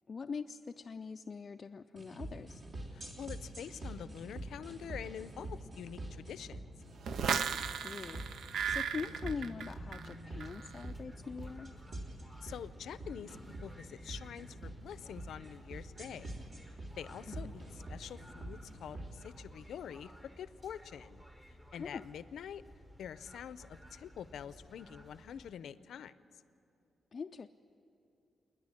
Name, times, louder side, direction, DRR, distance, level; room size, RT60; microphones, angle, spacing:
voice 1, 0.1-2.6 7.5-11.7 17.3-17.6 21.8-22.1 27.1-27.5, left 5 dB, 35° left, 4 dB, 0.4 m, -43 dB
sound 1, 2.0-19.1, right 1 dB, 50° right, 3.0 m, -46 dB
voice 2, 2.9-6.7 12.4-16.3 17.0-17.6 17.9-20.1 20.4-21.2 21.7-22.6 23.0-26.1, left 8 dB, 85° left, 15 dB, 0.6 m, -46 dB
sound 2, 7.0-10.1 10.4-10.8, right 7 dB, 70° right, 0.6 m, -36 dB
sound 3, 8.9-25.5, equal, 10° right, 1.1 m, -56 dB
27.5 x 10.5 x 9.9 m, 2.8 s
wide cardioid pair, 160°, 0 cm